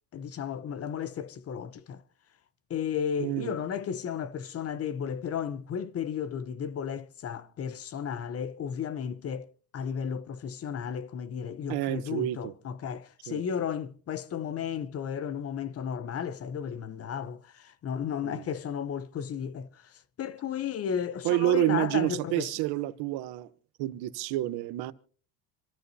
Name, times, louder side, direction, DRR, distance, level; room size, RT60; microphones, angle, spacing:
voice 1, 0.1-2.0 2.7-9.5 9.7-22.5, left 8 dB, 40° left, 0.8 m, -34 dB
voice 2, 3.2-3.5 11.7-12.5 13.3-13.4 18.2-18.4 21.2-23.5 23.8-24.9, right 16 dB, 75° right, 1.1 m, -29 dB
27.0 x 14.0 x 2.8 m
cardioid pair, 120°, 39 cm